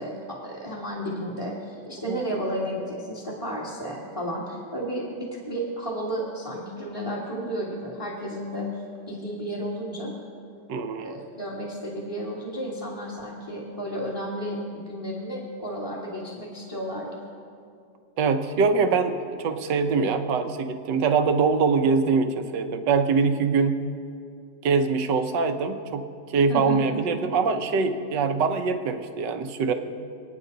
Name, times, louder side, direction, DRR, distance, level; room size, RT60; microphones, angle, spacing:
voice 1, 0.0-8.8 9.1-10.1 11.0-14.6 14.9-17.1 26.5-26.8, equal, 15° left, -4 dB, 1.9 m, -32 dB
voice 2, 10.7-11.2 18.2-23.7 24.6-26.1 26.3-29.7, right 5 dB, 75° right, 7 dB, 1.6 m, -23 dB
28.5 x 9.6 x 4.0 m, 2.4 s
omnidirectional pair, 1.9 m